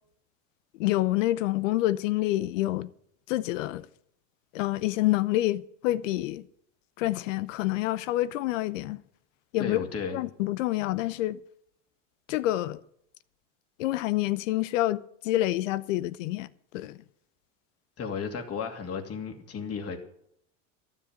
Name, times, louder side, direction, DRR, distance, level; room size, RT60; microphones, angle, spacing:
voice 1, 0.8-2.9 3.3-3.9 4.5-6.5 7.0-9.0 9.5-9.9 10.1-11.4 12.3-12.8 13.8-16.5 16.7-17.0, left 16 dB, 75° left, 0.8 m, -27 dB
voice 2, 9.6-10.2 18.0-20.0, left 6 dB, 40° left, 2.7 m, -34 dB
12.5 x 7.3 x 8.6 m
hypercardioid pair, 90°, 38 cm